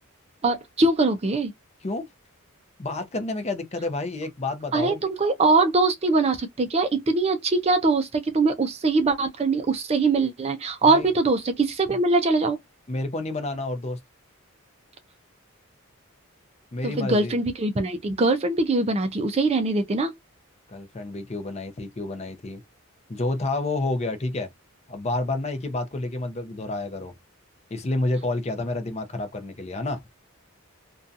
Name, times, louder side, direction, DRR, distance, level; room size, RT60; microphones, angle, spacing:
voice 1, 0.4-1.5 4.7-12.6 16.8-20.1, right 3 dB, 30° right, 0.4 m, -22 dB
voice 2, 2.8-5.0 10.9-11.1 12.9-14.0 16.7-17.3 20.7-22.6 23.1-24.5 24.9-27.1 27.7-30.0, left 2 dB, 30° left, 0.5 m, -29 dB
2.6 x 2.3 x 2.4 m
head